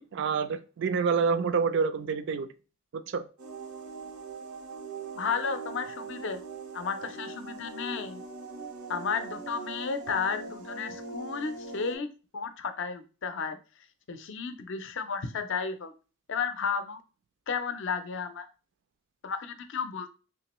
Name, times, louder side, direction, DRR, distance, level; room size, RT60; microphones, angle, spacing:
voice 1, 0.0-2.5 2.9-3.2, right 5 dB, 55° right, 0.3 m, -27 dB
sound 1, 3.4-11.9, right 4 dB, 85° right, 0.7 m, -41 dB
voice 2, 5.1-6.4 6.7-8.2 8.9-12.1 12.3-13.6 14.1-15.9 16.3-17.0 17.5-18.5 19.2-20.1, left 5 dB, 55° left, 0.5 m, -33 dB
3.5 x 2.9 x 3.0 m
head